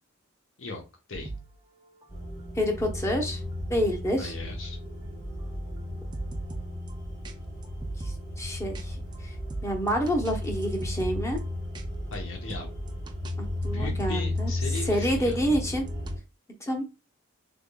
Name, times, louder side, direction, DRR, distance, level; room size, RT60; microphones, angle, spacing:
sound 1, 1.1-7.0 7.2-7.3 7.6-8.4 8.7-8.8 9.1-9.2 9.5-11.4 11.7-11.8 12.1-12.2 12.5-13.3 13.6-14.5 14.7-16.1, right 3 dB, 20° right, 0.4 m, -42 dB
sound 2, 2.1-16.2, left 1 dB, 35° left, 1.8 m, -34 dB
voice 1, 2.6-3.4 3.7-4.3 8.0-9.0 9.2-9.3 9.6-11.4 13.4-14.5 14.9-15.8 16.6-16.8, equal, 15° left, 2 dB, 0.8 m, -28 dB
voice 2, 4.2-4.8 12.1-12.7 13.6-15.4, left 3 dB, 65° left, 2 dB, 0.9 m, -38 dB
3.6 x 3.5 x 2.2 m, 0.27 s
head